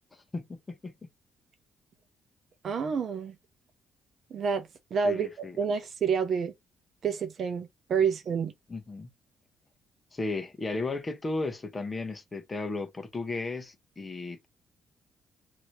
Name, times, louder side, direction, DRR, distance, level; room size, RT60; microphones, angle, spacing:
voice 1, 0.1-0.9 5.0-5.6 8.7-9.1 10.1-14.5, left 3 dB, 25° left, 0.9 m, -35 dB
voice 2, 2.6-3.3 4.3-5.3 5.6-6.5 7.0-8.5, right 6 dB, 55° right, 0.8 m, -28 dB
2.9 x 2.7 x 3.2 m
cardioid pair, 90°, 0 cm